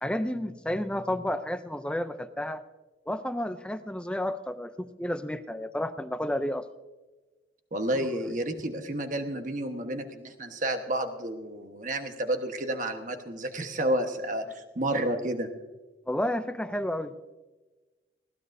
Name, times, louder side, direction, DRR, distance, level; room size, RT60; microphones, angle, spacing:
voice 1, 0.0-2.6 3.1-6.7 16.1-17.2, left 1 dB, 5° left, 10 dB, 0.4 m, -31 dB
voice 2, 7.7-15.5, right 1 dB, 40° right, 6 dB, 1.2 m, -30 dB
20.5 x 16.5 x 2.6 m, 1.2 s
head